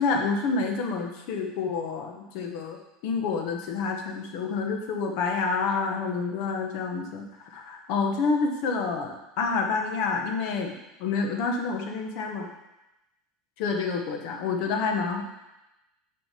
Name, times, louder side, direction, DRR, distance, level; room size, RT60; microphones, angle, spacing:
voice 1, 0.0-10.7 11.0-12.5 13.6-15.2, left 4 dB, 60° left, 3 dB, 1.2 m, -28 dB
6.3 x 5.1 x 5.1 m, 0.95 s
supercardioid pair, 150°, 0 cm